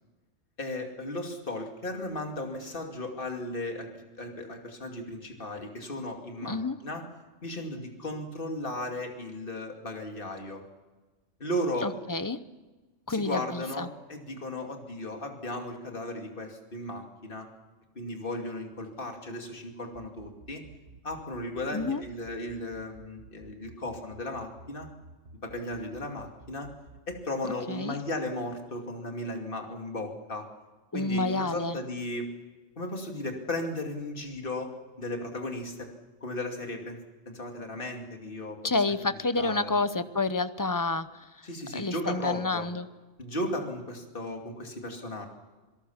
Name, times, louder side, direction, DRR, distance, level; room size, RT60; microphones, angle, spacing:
voice 1, 0.6-3.9 4.2-7.0 7.4-10.6 11.4-11.9 13.1-17.5 17.9-20.6 21.0-24.9 25.4-26.7 27.1-30.5 30.9-32.3 32.8-35.9 36.2-37.0 37.3-38.6 39.4-39.8 41.4-42.7 43.2-45.3, left 1 dB, 45° left, 3 dB, 2.7 m, -35 dB
voice 2, 6.5-6.8 11.8-12.4 13.1-13.9 21.7-22.0 27.7-28.0 30.9-31.8 38.6-41.3 41.7-42.9, left 3 dB, 20° left, 12 dB, 0.7 m, -29 dB
sound 1, 19.9-27.2, right 3 dB, 55° right, 1.5 m, -51 dB
27.0 x 18.0 x 7.2 m, 1.2 s
omnidirectional pair, 1.3 m